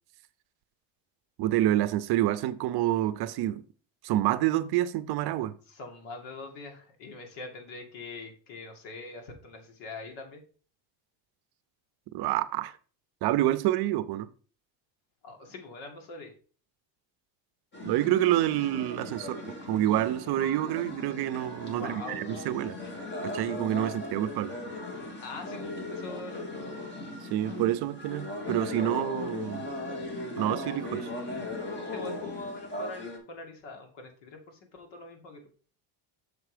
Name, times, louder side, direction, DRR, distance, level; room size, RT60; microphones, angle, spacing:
voice 1, 1.4-3.6 4.0-5.5 12.1-12.7 13.2-14.3 17.8-19.4 19.7-22.8 23.2-24.6 27.3-29.6 30.4-31.1, right 13 dB, 55° right, 0.6 m, -27 dB
voice 2, 5.7-10.4 15.2-16.3 21.7-22.2 25.2-26.5 30.9-31.4 31.9-35.4, left 3 dB, 70° left, 2.3 m, -43 dB
sound 1, 17.7-33.2, left 2 dB, 25° left, 1.6 m, -38 dB
6.6 x 4.6 x 4.9 m
cardioid pair, 165°, 47 cm